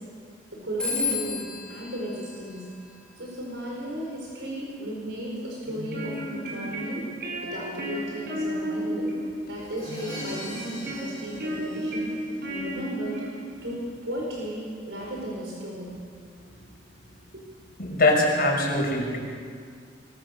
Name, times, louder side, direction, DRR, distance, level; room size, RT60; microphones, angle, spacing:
voice 1, 0.5-2.7 3.2-6.2 6.4-7.1 7.4-9.1 9.5-12.1 12.5-13.2 13.6-16.0 17.3-17.4, equal, 75° right, -3 dB, 5.1 m, -35 dB
Telephone, 0.8-3.3, left 4 dB, 5° left, 3.5 m, -33 dB
sound 1, 5.6-13.7, equal, 60° right, 6.2 m, -33 dB
Crash cymbal, 9.6-12.5, left 1 dB, 25° left, 5.0 m, -42 dB
voice 2, 17.8-19.2, left 2 dB, 55° left, 0 dB, 5.5 m, -22 dB
23.5 x 22.0 x 6.7 m, 2.1 s
head